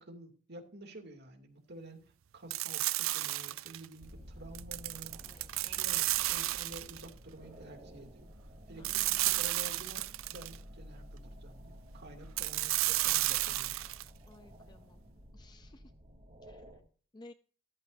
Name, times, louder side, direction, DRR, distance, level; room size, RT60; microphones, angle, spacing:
voice 1, 0.0-5.2 5.6-8.3 8.7-10.1 10.3-13.8, right 1 dB, 55° right, 3 dB, 2.6 m, -50 dB
sound 1, 2.5-3.9 4.5-7.1 8.8-10.6 12.4-14.1, right 18 dB, 70° right, 0.4 m, -32 dB
sound 2, 4.0-16.8, equal, 30° right, 2.9 m, -52 dB
voice 2, 5.2-5.8 8.8-9.0 14.3-15.0 15.3-15.8 16.4-16.6 17.1-17.3, left 2 dB, 20° left, 11 dB, 0.4 m, -56 dB
14.5 x 13.5 x 2.7 m, 0.42 s
head